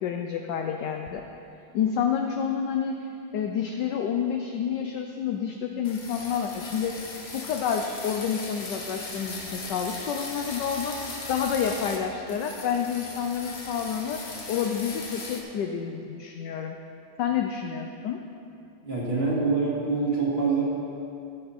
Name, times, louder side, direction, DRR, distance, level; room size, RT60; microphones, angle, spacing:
voice 1, 0.0-1.2 1.7-7.0 7.3-11.0 11.3-14.2 14.5-16.8 17.2-18.2, left 7 dB, 70° left, 4 dB, 1.0 m, -29 dB
sound 1, 5.8-12.0 12.3-15.4, left 3 dB, 40° left, 1.0 m, -38 dB
voice 2, 18.8-20.6, right 4 dB, 30° right, -6 dB, 2.3 m, -25 dB
15.0 x 6.9 x 4.2 m, 2.6 s
omnidirectional pair, 2.3 m